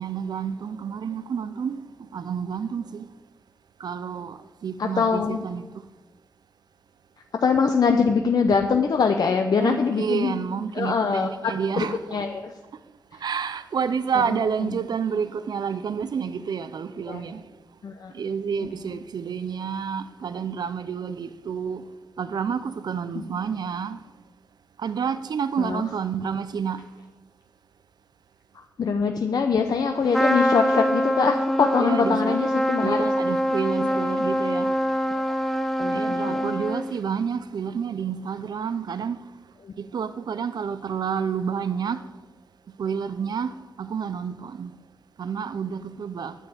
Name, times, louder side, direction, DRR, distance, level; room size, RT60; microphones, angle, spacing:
voice 1, 0.0-1.8 2.1-3.0 3.8-5.9 9.6-12.2 13.2-17.4 18.1-21.8 22.2-24.0 24.8-26.9 31.8-32.4 32.8-34.8 35.9-39.2 39.8-42.0 42.8-44.7 45.2-46.4, right 6 dB, 85° right, 0.7 m, -29 dB
voice 2, 4.8-5.4 7.4-10.3 10.7-12.5 14.2-14.4 14.6-14.7 17.1-17.2 17.8-18.1 23.1-23.4 25.6-25.8 28.5-33.0 33.8-34.0 35.8-36.5 39.6-39.7, left 5 dB, 75° left, 0.8 m, -23 dB
Trumpet, 30.1-37.0, equal, 5° left, 0.8 m, -24 dB
10.0 x 9.3 x 8.6 m
wide cardioid pair, 170°, 7 cm